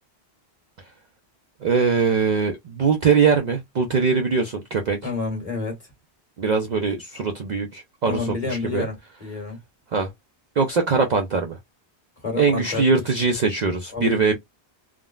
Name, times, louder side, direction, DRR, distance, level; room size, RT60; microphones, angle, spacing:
voice 1, 1.6-5.0 6.4-8.9 9.9-10.1 10.6-11.6 12.4-14.4, right 5 dB, 55° right, 0.5 m, -21 dB
voice 2, 5.0-5.8 8.0-8.9 9.2-9.6 12.2-12.8 13.9-14.4, left 3 dB, 35° left, 1.5 m, -29 dB
3.6 x 2.1 x 2.2 m
omnidirectional pair, 1.1 m